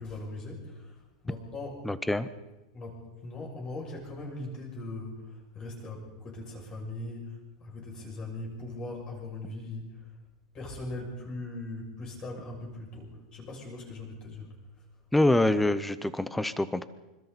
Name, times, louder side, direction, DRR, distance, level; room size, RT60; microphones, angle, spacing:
voice 1, 0.0-1.8 2.7-10.1 10.5-14.5, left 2 dB, 20° left, -1 dB, 6.5 m, -40 dB
voice 2, 1.8-2.3 15.1-16.9, left 1 dB, 5° left, 14 dB, 0.7 m, -25 dB
26.0 x 25.5 x 4.1 m, 1.1 s
supercardioid pair, 170°, 4 cm